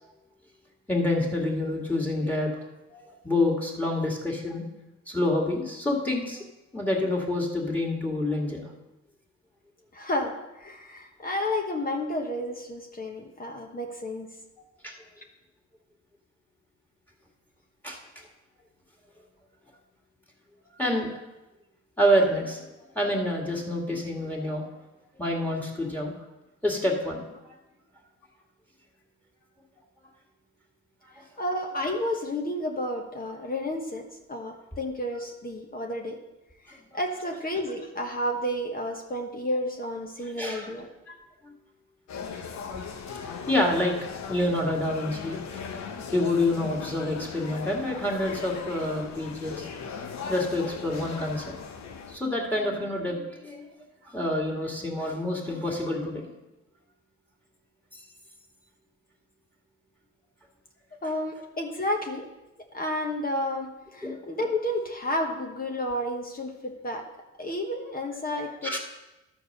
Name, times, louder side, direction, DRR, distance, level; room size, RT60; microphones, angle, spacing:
voice 1, 0.9-2.6 2.9-4.7 5.1-6.4 6.7-8.7 14.8-14.9 17.8-18.0 20.8-21.1 22.0-22.6 22.9-24.7 25.2-26.1 26.6-27.2 36.7-36.8 40.4-40.7 41.1-41.2 43.2-44.0 44.3-45.6 46.1-49.7 50.3-51.4 52.1-53.6 54.0-56.3 64.0-64.2 68.6-68.8, left 1 dB, 5° left, 0 dB, 2.2 m, -27 dB
voice 2, 9.9-14.3 31.4-36.2 36.6-40.9 61.0-62.3 62.7-67.0 67.4-68.8, left 1 dB, 30° left, 2 dB, 1.2 m, -31 dB
sound 1, 42.1-52.2, left 6 dB, 65° left, 1.0 m, -38 dB
12.0 x 4.6 x 6.7 m, 1.0 s
cardioid pair, 90°, 30 cm